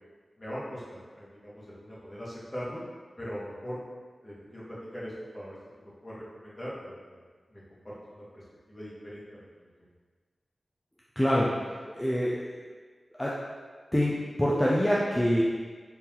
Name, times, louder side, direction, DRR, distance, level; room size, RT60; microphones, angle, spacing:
voice 1, 0.4-2.8 3.2-3.8 4.2-7.2 7.5-8.4 8.7-9.7, equal, 30° left, -8 dB, 1.2 m, -41 dB
voice 2, 11.2-11.5 11.9-12.4 13.2-13.4 13.9-14.1 14.4-15.4, equal, 10° left, -6 dB, 0.4 m, -24 dB
3.7 x 2.7 x 2.9 m, 1.5 s
wide cardioid pair, 75°, 0 cm